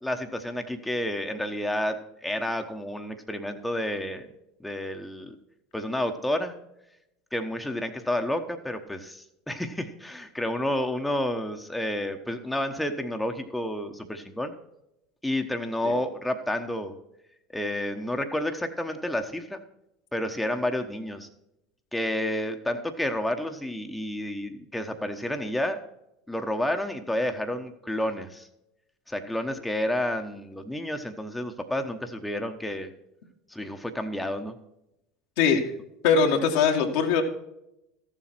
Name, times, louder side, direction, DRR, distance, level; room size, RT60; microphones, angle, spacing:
voice 1, 0.0-4.3 4.6-5.3 5.7-6.6 7.3-14.5 15.2-16.9 17.5-19.6 20.1-21.3 21.9-25.8 26.3-28.5 29.1-32.9 33.5-34.5, left 1 dB, 5° left, 5 dB, 1.1 m, -30 dB
voice 2, 36.0-37.2, left 6 dB, 65° left, 3 dB, 1.6 m, -21 dB
13.5 x 7.4 x 4.4 m, 0.85 s
hypercardioid pair, 75°, 0 cm